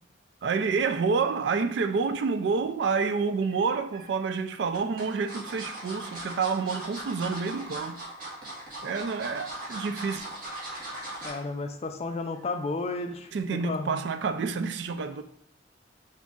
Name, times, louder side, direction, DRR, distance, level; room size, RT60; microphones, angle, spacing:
voice 1, 0.4-8.0 8.8-10.3 13.3-15.2, right 5 dB, 65° right, 0.3 m, -28 dB
sound 1, 3.5-4.0 4.7-11.4 11.8-12.1 12.4-12.5, right 1 dB, 50° right, 1.5 m, -39 dB
voice 2, 11.2-13.3 13.6-14.0, left 3 dB, 35° left, 0.4 m, -32 dB
4.0 x 2.5 x 3.6 m
head